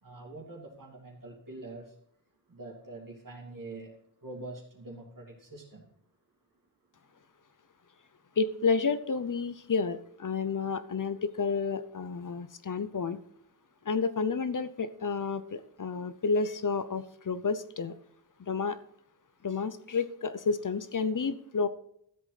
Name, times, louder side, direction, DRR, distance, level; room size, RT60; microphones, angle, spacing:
voice 1, 0.0-1.9 2.5-3.9 4.2-5.9, right 2 dB, 45° right, -2 dB, 2.7 m, -45 dB
voice 2, 8.4-13.2 13.9-17.9 18.5-18.8 19.4-21.7, left 5 dB, 45° left, 13 dB, 0.7 m, -30 dB
13.5 x 7.9 x 4.0 m, 0.69 s
wide cardioid pair, 140°, 45 cm